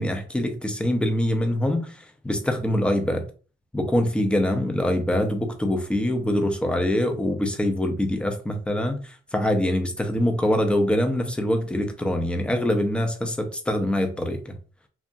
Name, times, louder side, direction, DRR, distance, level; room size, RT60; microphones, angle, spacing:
voice 1, 0.0-3.3 3.7-14.6, left 1 dB, 5° left, 0.5 m, -24 dB
2.7 x 2.2 x 2.6 m
cardioid pair, 90°, 20 cm